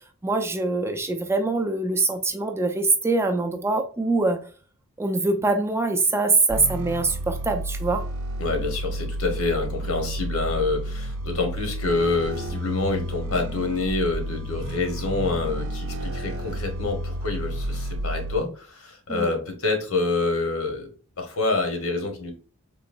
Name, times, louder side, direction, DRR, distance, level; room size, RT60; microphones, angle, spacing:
voice 1, 0.2-4.4 5.0-8.0 19.1-19.3, right 3 dB, 10° right, 0.3 m, -23 dB
sound 1, 6.5-18.4, right 1 dB, 85° right, 0.6 m, -31 dB
voice 2, 8.4-20.9 21.2-22.3, left 3 dB, 90° left, 1.1 m, -27 dB
3.8 x 2.8 x 2.5 m
head